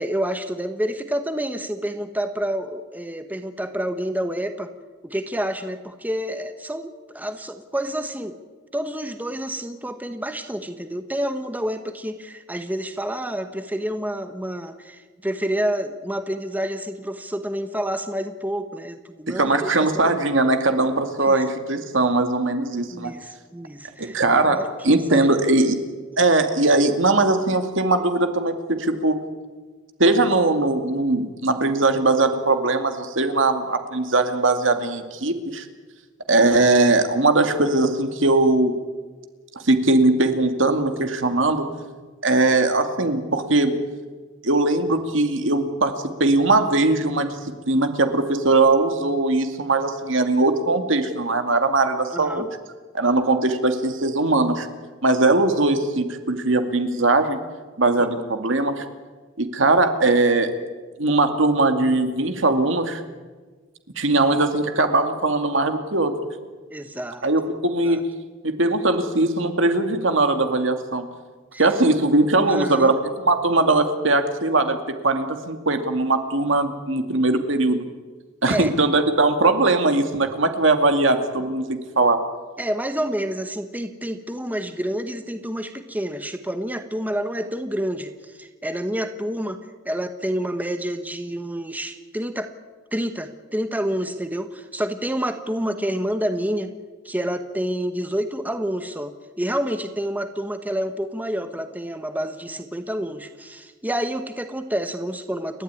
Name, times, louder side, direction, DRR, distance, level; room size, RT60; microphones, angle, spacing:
voice 1, 0.0-4.7 5.0-8.3 8.7-19.7 20.1-20.2 21.3-21.5 22.9-25.5 52.1-52.5 58.0-58.1 66.7-67.3 67.8-68.0 71.5-71.6 72.5-73.0 78.5-78.7 82.6-89.6 89.8-92.5 92.9-96.7 97.0-105.6, equal, 10° right, 7 dB, 1.2 m, -28 dB
voice 2, 19.4-23.1 24.0-25.8 26.2-29.2 30.0-35.7 36.3-38.7 39.6-41.7 42.2-43.7 44.4-45.9 46.2-47.4 47.7-52.4 52.9-54.7 55.0-57.4 57.8-58.8 59.4-60.5 61.0-63.0 64.0-66.1 67.2-68.0 68.4-71.0 71.6-74.8 75.0-77.9 78.4-82.2, right 2 dB, 65° right, 7 dB, 2.3 m, -20 dB
30.0 x 12.5 x 9.7 m, 1.4 s
head